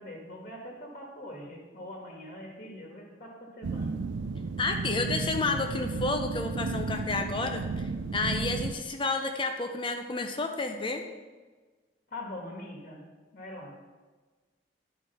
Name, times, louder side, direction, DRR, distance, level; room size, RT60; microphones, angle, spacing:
voice 1, 0.0-4.0 12.1-13.0 13.3-13.7, left 1 dB, 50° left, -1 dB, 1.4 m, -43 dB
sound 1, 3.6-8.7, right 4 dB, 85° right, 0.4 m, -33 dB
voice 2, 4.6-11.0, left 3 dB, 30° left, 5 dB, 0.5 m, -31 dB
10.5 x 4.9 x 5.4 m, 1.3 s
head